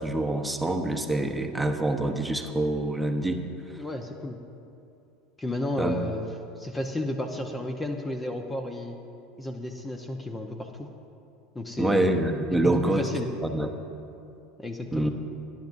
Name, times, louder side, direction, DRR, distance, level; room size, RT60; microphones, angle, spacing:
voice 1, 0.0-3.4 5.8-6.0 11.8-13.1 13.4-13.7 14.9-15.1, right 1 dB, 5° right, 3 dB, 1.2 m, -26 dB
voice 2, 3.8-4.4 5.4-6.2 6.6-9.0 9.4-10.9 11.5-12.1 12.5-13.3 14.6-15.1, left 1 dB, 15° left, 4 dB, 1.0 m, -32 dB
28.5 x 11.0 x 2.7 m, 2.7 s
hypercardioid pair, 80°, 0 cm